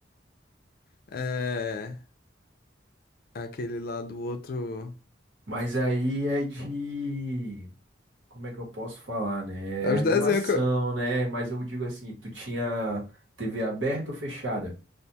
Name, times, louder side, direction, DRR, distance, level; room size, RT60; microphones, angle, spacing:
voice 1, 1.1-2.0 3.3-4.9 9.8-10.6, left 4 dB, 50° left, 0.4 m, -28 dB
voice 2, 5.5-7.7 8.3-13.0 13.4-14.7, right 1 dB, 75° right, 1.1 m, -30 dB
2.4 x 2.2 x 2.7 m
head